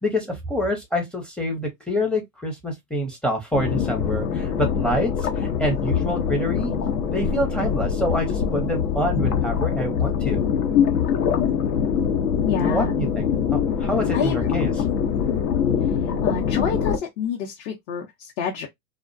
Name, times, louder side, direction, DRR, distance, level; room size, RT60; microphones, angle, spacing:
voice 1, 0.0-5.1 5.4-6.7 7.1-10.5 12.6-14.7, equal, ahead, 0.5 m, -26 dB
sound 1, 3.5-17.0, left 7 dB, 80° left, 0.8 m, -23 dB
voice 2, 12.4-12.9 14.1-14.5 16.0-18.7, left 7 dB, 45° left, 0.7 m, -28 dB
2.4 x 2.1 x 2.5 m
hypercardioid pair, 115°, 46 cm